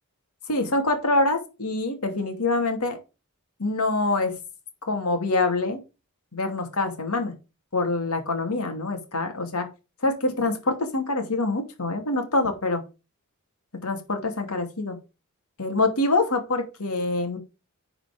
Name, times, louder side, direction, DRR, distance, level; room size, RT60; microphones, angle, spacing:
voice 1, 0.5-3.0 3.6-4.3 4.9-5.8 6.3-7.3 7.7-9.7 10.0-12.8 13.8-15.0 15.6-17.4, left 2 dB, 80° left, 5 dB, 2.6 m, -25 dB
10.5 x 5.0 x 5.1 m, 0.29 s
head